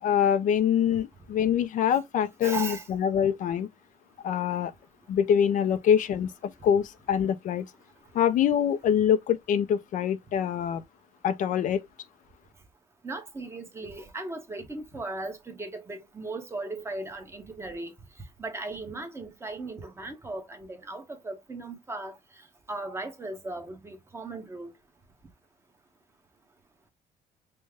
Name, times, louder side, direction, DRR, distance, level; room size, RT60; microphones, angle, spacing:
voice 1, 0.0-3.7 4.2-4.7 5.1-7.7 8.1-10.8 11.2-11.9, left 9 dB, 50° left, 0.4 m, -25 dB
voice 2, 2.4-2.9 13.0-17.9 18.4-22.1 22.7-24.7, right 3 dB, 15° right, 0.9 m, -37 dB
5.3 x 2.1 x 3.4 m
cardioid pair, 150°, 17 cm